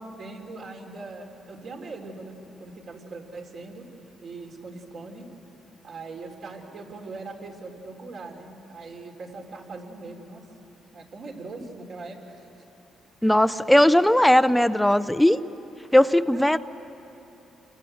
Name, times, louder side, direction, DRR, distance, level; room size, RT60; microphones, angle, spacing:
voice 1, 0.2-3.9 4.2-5.3 5.8-10.4 10.9-12.5 13.2-13.5 16.3-16.6, right 3 dB, 60° right, 2 dB, 3.7 m, -41 dB
voice 2, 13.2-15.4 15.9-16.6, left 1 dB, 5° left, 14 dB, 0.6 m, -18 dB
28.5 x 24.5 x 7.9 m, 3.0 s
cardioid pair, 90°, 0 cm